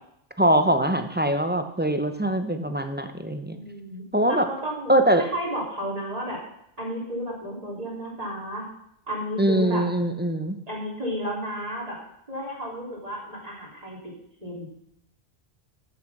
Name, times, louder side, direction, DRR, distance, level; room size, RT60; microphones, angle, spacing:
voice 1, 0.4-3.6 4.1-4.5 4.9-5.2 9.4-10.6, right 1 dB, 10° right, 7 dB, 0.7 m, -22 dB
voice 2, 3.5-6.4 6.8-8.7 9.1-9.8 10.7-12.0 12.3-14.0 14.4-14.7, equal, 35° right, -4 dB, 3.6 m, -32 dB
13.0 x 6.6 x 6.0 m, 0.74 s
omnidirectional pair, 1.1 m